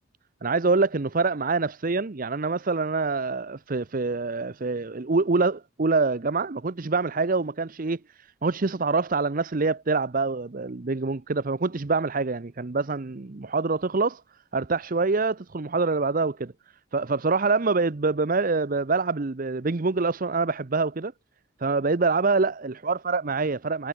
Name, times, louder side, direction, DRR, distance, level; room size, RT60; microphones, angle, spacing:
voice 1, 0.4-14.2 14.5-16.5 16.9-21.1 21.6-23.9, right 3 dB, 40° right, 0.7 m, -25 dB
head